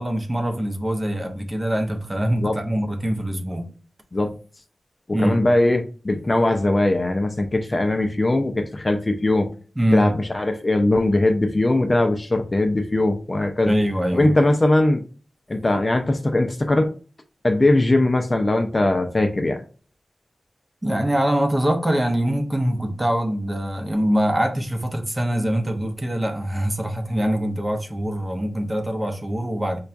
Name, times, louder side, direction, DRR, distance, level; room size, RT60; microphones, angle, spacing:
voice 1, 0.0-3.7 5.1-5.4 9.8-10.1 13.6-14.3 20.8-29.8, equal, 20° right, 0.7 m, -23 dB
voice 2, 5.2-9.5 9.9-13.7 14.1-15.0 15.5-16.9 17.4-19.6, left 2 dB, 30° left, 0.4 m, -20 dB
5.6 x 2.3 x 2.5 m
wide cardioid pair, 100°, 0 cm